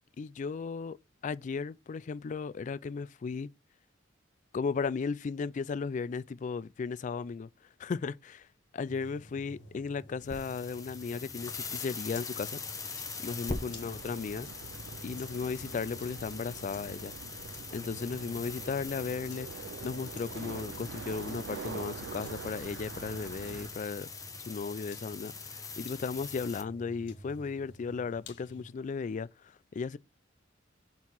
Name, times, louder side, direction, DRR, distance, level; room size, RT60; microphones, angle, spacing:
voice 1, 0.2-1.0 1.2-3.5 4.5-7.5 7.8-8.5 8.7-12.6 13.2-14.5 15.0-17.1 17.7-24.1 24.5-30.0, left 5 dB, 40° left, 0.3 m, -35 dB
sound 1, 8.8-28.6, left 1 dB, 65° left, 1.5 m, -52 dB
sound 2, 10.2-26.6, left 4 dB, 20° left, 0.9 m, -43 dB
sound 3, 13.4-23.7, right 6 dB, 65° right, 0.3 m, -45 dB
5.5 x 4.5 x 6.1 m
head